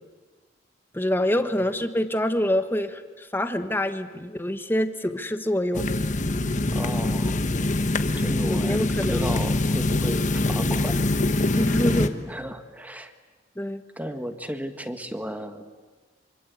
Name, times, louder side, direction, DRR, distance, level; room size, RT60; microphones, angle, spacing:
voice 1, 0.9-5.9 8.4-9.3 11.6-12.2 13.5-13.8, left 1 dB, 10° left, 9 dB, 1.3 m, -26 dB
sound 1, 5.7-12.1, left 2 dB, 45° left, 1.3 m, -24 dB
voice 2, 6.7-7.4 8.1-11.1 12.1-13.1 14.0-15.8, equal, 10° right, 8 dB, 1.6 m, -35 dB
26.0 x 24.5 x 8.4 m, 1.4 s
head